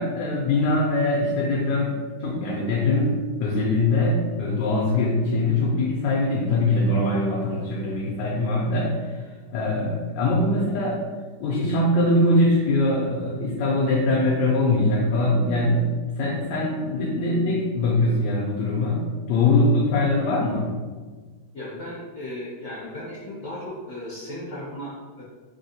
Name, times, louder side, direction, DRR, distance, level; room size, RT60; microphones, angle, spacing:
voice 1, 0.0-1.9 2.2-9.2 9.5-11.0 11.4-20.7, left 2 dB, 85° left, -3 dB, 1.2 m, -22 dB
voice 2, 21.5-25.2, left 1 dB, 60° left, -7 dB, 0.9 m, -36 dB
3.3 x 2.8 x 2.7 m, 1.4 s
omnidirectional pair, 1.9 m